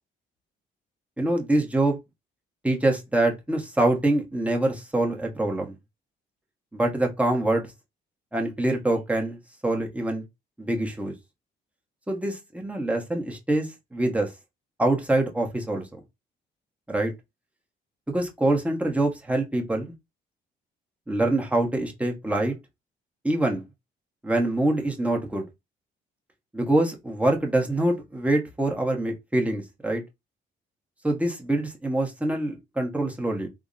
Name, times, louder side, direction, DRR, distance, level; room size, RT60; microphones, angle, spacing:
voice 1, 1.2-2.0 2.6-5.7 6.7-7.7 8.3-10.2 10.6-11.1 12.1-14.3 14.8-16.0 16.9-17.1 18.1-19.9 21.1-22.5 23.2-23.6 24.2-25.5 26.5-30.0 31.0-33.5, right 1 dB, 5° right, 0.9 m, -25 dB
3.5 x 2.1 x 2.5 m
cardioid pair, 90°, 20 cm